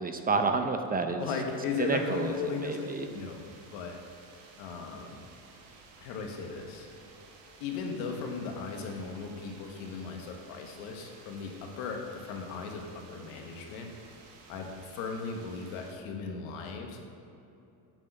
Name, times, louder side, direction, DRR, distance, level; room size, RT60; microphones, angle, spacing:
voice 1, 0.0-1.2 1.8-3.1, right 4 dB, 20° right, 6 dB, 0.6 m, -30 dB
voice 2, 1.2-4.0 4.6-5.2 6.0-6.9 7.6-13.9 14.5-17.0, left 5 dB, 85° left, 2 dB, 1.5 m, -37 dB
sound 1, 1.2-15.9, right 4 dB, 90° right, 1.6 m, -54 dB
8.9 x 6.0 x 6.7 m, 2.8 s
cardioid pair, 115°, 44 cm